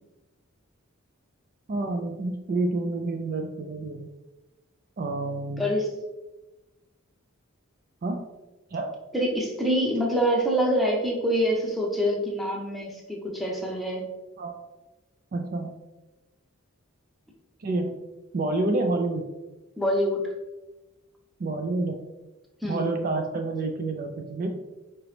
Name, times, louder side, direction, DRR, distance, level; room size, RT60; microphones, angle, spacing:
voice 1, 1.7-4.1 5.0-5.6 8.0-8.2 8.7-8.9 14.4-14.5 15.3-15.7 17.6-17.9 18.3-19.3 21.4-22.0 22.6-24.5, right 2 dB, 40° right, 4 dB, 0.3 m, -28 dB
voice 2, 5.6-5.9 9.1-14.0 19.8-20.2 22.6-22.9, equal, ahead, -1 dB, 0.6 m, -25 dB
4.9 x 3.0 x 3.2 m, 1.1 s
head